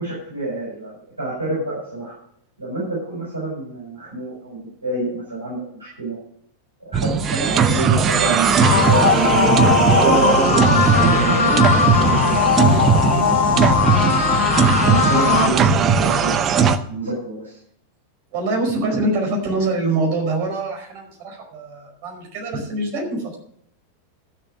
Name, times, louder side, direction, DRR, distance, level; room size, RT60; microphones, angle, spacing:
voice 1, 0.0-2.1 2.6-6.2 6.8-10.3 10.9-12.3 12.6-13.6 14.2-16.6 16.9-17.6, right 2 dB, 80° right, -7 dB, 6.9 m, -28 dB
sound 1, 6.9-16.8, right 6 dB, 25° right, 0.8 m, -18 dB
sound 2, 8.6-15.5, left 6 dB, 60° left, 1.6 m, -19 dB
voice 2, 18.3-23.4, right 2 dB, 45° right, 2 dB, 5.0 m, -24 dB
14.0 x 6.9 x 6.6 m, 0.65 s
figure-of-eight pair, 90°, 0 cm